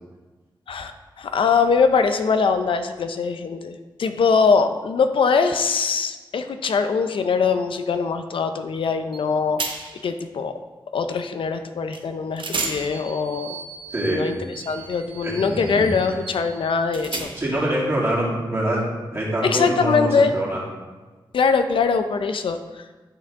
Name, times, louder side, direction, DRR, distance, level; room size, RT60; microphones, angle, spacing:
voice 1, 1.2-9.6 10.0-10.5 10.9-13.6 14.0-14.4 14.7-17.3 19.4-20.3 21.3-22.8, left 5 dB, 80° left, 8 dB, 0.5 m, -22 dB
sound 1, 9.1-9.3 9.6-10.1 11.9-12.0 12.4-17.7, right 4 dB, 70° right, 0.8 m, -34 dB
voice 2, 13.9-14.3 15.2-16.0 17.3-20.6, right 1 dB, 30° right, -5 dB, 2.3 m, -25 dB
9.3 x 5.8 x 3.6 m, 1.3 s
wide cardioid pair, 125°, 9 cm